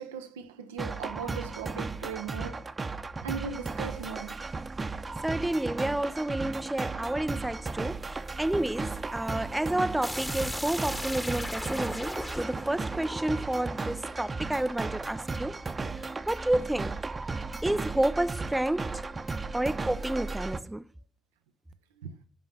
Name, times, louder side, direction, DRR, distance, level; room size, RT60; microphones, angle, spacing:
voice 1, 0.0-2.6 3.2-4.5 22.0-22.2, right 6 dB, 80° right, 0.6 m, -38 dB
sound 1, 0.8-20.6, right 3 dB, 30° right, 0.8 m, -35 dB
voice 2, 5.2-15.6 15.9-17.0 17.6-19.1 19.5-20.9, right 1 dB, 10° right, 0.5 m, -30 dB
sound 2, 10.0-14.7, equal, 10° left, 1.3 m, -38 dB
11.5 x 4.1 x 7.2 m
figure-of-eight pair, 40°, 0 cm